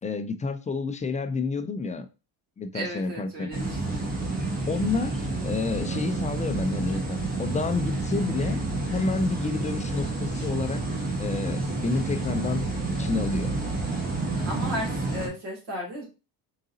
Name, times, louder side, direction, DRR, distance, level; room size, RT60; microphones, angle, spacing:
voice 1, 0.0-2.1 2.6-3.5 4.7-8.6 8.9-10.8 11.2-12.7 13.0-13.5, left 4 dB, 20° left, 0.3 m, -29 dB
voice 2, 2.7-4.1 14.3-16.1, equal, 65° right, 2.4 m, -35 dB
sound 1, 3.5-15.3, right 2 dB, 20° right, 1.3 m, -29 dB
3.9 x 3.7 x 2.7 m
cardioid pair, 110°, 44 cm